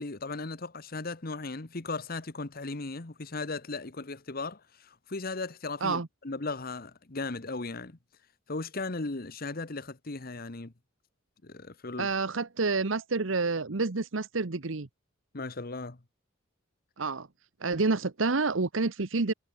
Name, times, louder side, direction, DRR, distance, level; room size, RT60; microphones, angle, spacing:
voice 1, 0.0-8.0 8.5-10.7 11.4-12.1 15.3-16.0, left 3 dB, 50° left, 1.2 m, -37 dB
voice 2, 12.0-14.9 17.0-17.3 17.6-19.3, right 3 dB, 80° right, 1.1 m, -28 dB
head